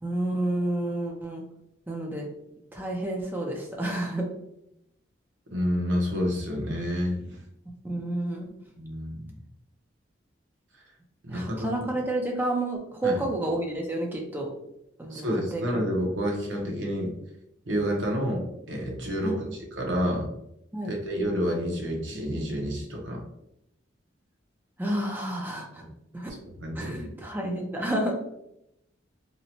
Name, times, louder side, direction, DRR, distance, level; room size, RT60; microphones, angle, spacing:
voice 1, 0.0-1.4 1.9-2.3 2.7-4.2 7.8-8.5 11.3-14.5 15.0-15.3 15.5-15.8 19.2-19.4 20.7-20.9 24.8-25.8 26.1-26.3 26.8-28.1, right 1 dB, 10° right, 0 dB, 0.4 m, -30 dB
voice 2, 5.5-7.4 8.8-9.2 11.2-11.9 13.0-13.2 15.1-17.1 17.7-20.3 20.8-23.2 26.4-27.0, equal, 70° right, 0 dB, 0.7 m, -29 dB
2.7 x 2.1 x 2.8 m, 0.82 s
head